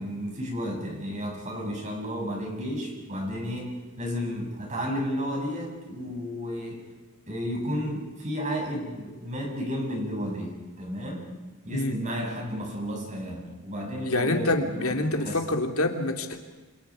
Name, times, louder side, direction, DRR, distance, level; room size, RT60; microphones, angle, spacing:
voice 1, 0.0-6.8 7.3-11.3 11.6-15.4, equal, 35° right, 0 dB, 6.8 m, -32 dB
voice 2, 14.0-16.4, left 2 dB, 80° left, 5 dB, 2.5 m, -26 dB
28.5 x 26.5 x 4.9 m, 1.2 s
head